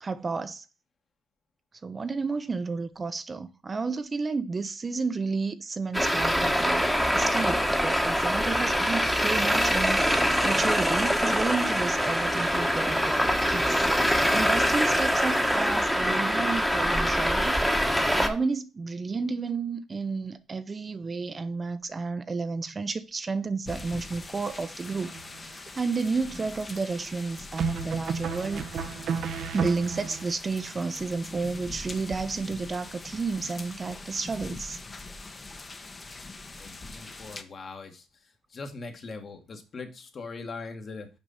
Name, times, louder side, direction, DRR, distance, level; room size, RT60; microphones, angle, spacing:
voice 1, 0.0-0.6 1.8-6.9 7.1-28.7 29.5-34.8, right 4 dB, 30° right, 0.6 m, -32 dB
Traffic noise roadway noise, 5.9-18.3, equal, ahead, 1.1 m, -24 dB
sound 1, 23.7-37.4, left 3 dB, 30° left, 0.9 m, -42 dB
sound 2, 24.9-25.5 27.6-30.2, right 6 dB, 70° right, 0.8 m, -32 dB
voice 2, 36.5-38.1 38.5-41.1, left 3 dB, 45° left, 1.5 m, -41 dB
6.1 x 5.1 x 5.5 m
cardioid pair, 90°, 0 cm